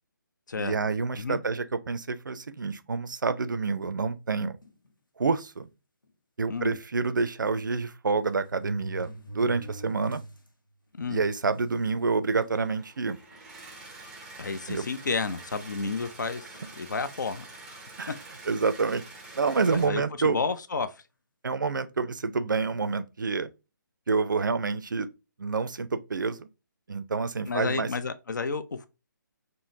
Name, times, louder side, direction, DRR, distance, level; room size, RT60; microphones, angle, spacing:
voice 1, 0.6-4.6 5.2-5.7 6.4-10.2 11.1-13.2 14.7-14.8 18.0-18.1 18.5-19.0 19.3-20.4 21.4-23.5 24.1-25.1 25.4-26.5 26.9-27.9, right 4 dB, 70° right, 0.4 m, -28 dB
sound 1, 4.6-4.9 5.6-5.7 6.0-6.1 7.4-7.5 8.2-10.5 10.9-11.0 11.9-12.0 12.3-12.7 13.3-13.5 14.7-15.6 16.5-16.8, right 1 dB, 80° left, 0.8 m, -43 dB
sound 2, 12.5-19.9, right 3 dB, 5° right, 0.5 m, -47 dB
voice 2, 14.4-17.8 18.1-18.2 19.7-21.0 27.5-28.9, left 4 dB, 65° left, 0.4 m, -31 dB
3.7 x 2.0 x 2.6 m
figure-of-eight pair, 140°, 11 cm